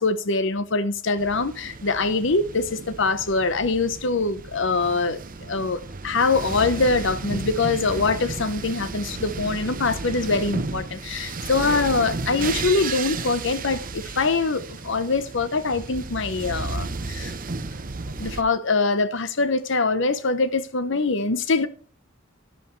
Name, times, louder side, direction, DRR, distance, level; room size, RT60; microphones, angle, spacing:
voice 1, 0.0-17.3 18.2-21.7, left 3 dB, 65° left, 1.0 m, -24 dB
sound 1, 1.2-18.4, right 3 dB, 45° right, 0.9 m, -33 dB
12.5 x 10.5 x 3.2 m
head